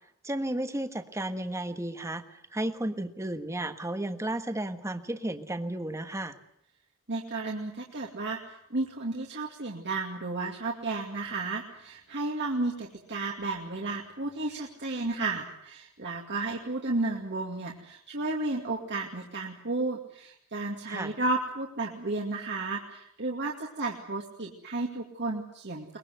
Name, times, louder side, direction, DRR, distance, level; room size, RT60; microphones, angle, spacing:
voice 1, 0.2-6.4 20.9-21.1, right 1 dB, 15° right, 8 dB, 1.5 m, -33 dB
voice 2, 7.1-8.4 8.7-26.0, right 2 dB, 55° right, 0 dB, 2.4 m, -33 dB
22.5 x 21.5 x 7.9 m, 0.75 s
head